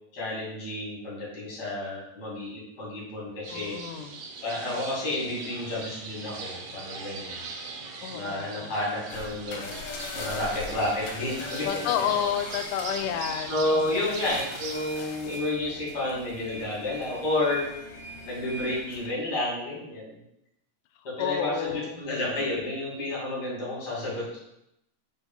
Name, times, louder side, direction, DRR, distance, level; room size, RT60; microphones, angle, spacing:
voice 1, 0.1-3.8 4.4-7.5 8.1-9.7 10.1-11.7 12.0-12.1 13.5-17.7 18.2-20.2 21.0-24.4, left 1 dB, 35° left, -5 dB, 2.8 m, -31 dB
sound 1, 3.4-14.7, right 4 dB, 65° right, 1.7 m, -40 dB
voice 2, 3.5-4.2 8.0-8.7 11.7-13.8 21.2-21.9, left 9 dB, 85° left, 8 dB, 2.1 m, -30 dB
sound 2, 9.1-19.1, left 2 dB, 70° left, 2.2 m, -40 dB
4.8 x 4.5 x 5.3 m, 0.83 s
omnidirectional pair, 3.7 m